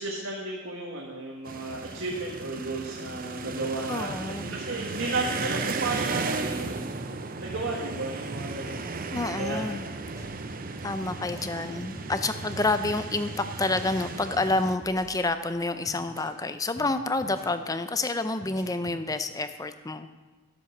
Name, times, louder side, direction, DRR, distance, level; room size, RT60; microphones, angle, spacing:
voice 1, 0.0-6.8 7.4-8.8 9.3-9.6, right 2 dB, 65° right, -2 dB, 1.7 m, -33 dB
sound 1, 1.5-14.8, right 3 dB, 40° right, 0.7 m, -35 dB
voice 2, 3.9-4.6 9.1-9.8 10.8-13.3 13.6-20.1, left 2 dB, 15° left, 10 dB, 0.5 m, -28 dB
sound 2, 9.6-9.7 10.0-10.8 11.1-11.5 12.0-12.1 12.4-12.7 13.6-14.5 14.8-15.5 15.9-16.3 16.8-16.9 17.2-17.5 18.4-19.0, right 1 dB, 15° right, 2.5 m, -46 dB
13.0 x 8.0 x 5.9 m, 1.3 s
head